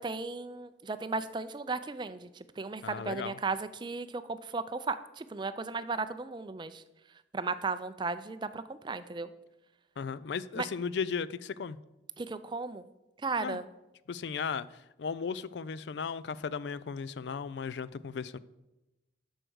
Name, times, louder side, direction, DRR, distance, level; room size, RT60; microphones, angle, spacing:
voice 1, 0.0-6.8 7.3-9.3 10.6-10.7 12.2-12.9 13.2-13.7, right 4 dB, 25° right, 0.4 m, -35 dB
voice 2, 2.8-3.3 10.0-11.8 13.4-13.6 14.1-18.4, left 6 dB, 70° left, 0.4 m, -36 dB
7.8 x 6.4 x 6.3 m
head